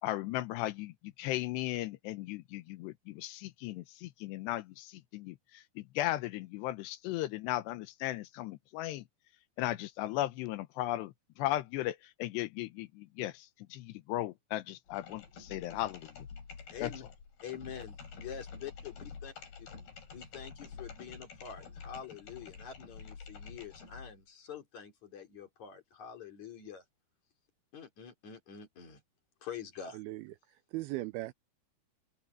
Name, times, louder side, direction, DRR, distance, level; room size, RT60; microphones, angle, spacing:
voice 1, 0.0-9.1 9.6-16.3 16.8-16.9, left 15 dB, 85° left, 3.1 m, -36 dB
sound 1, 14.9-24.2, left 5 dB, 65° left, 6.9 m, -48 dB
voice 2, 16.7-17.0 17.4-19.3 20.1-26.8 27.7-29.0 29.4-30.0, left 8 dB, 45° left, 4.2 m, -46 dB
voice 3, 29.9-31.3, right 18 dB, 80° right, 2.3 m, -39 dB
open air
omnidirectional pair, 4.8 m